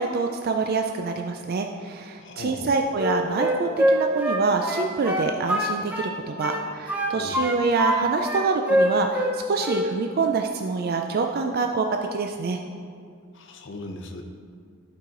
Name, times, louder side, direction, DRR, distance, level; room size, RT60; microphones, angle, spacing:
voice 1, 0.0-12.6, right 4 dB, 45° right, 4 dB, 0.4 m, -26 dB
voice 2, 2.2-2.7 7.1-7.4 13.3-14.2, left 2 dB, 60° left, 3 dB, 0.7 m, -38 dB
Wind instrument woodwind instrument, 2.9-6.1 6.4-8.0 8.2-9.4 9.6-9.9, equal, 5° right, 0.7 m, -24 dB
11.0 x 4.8 x 3.8 m, 2.2 s
head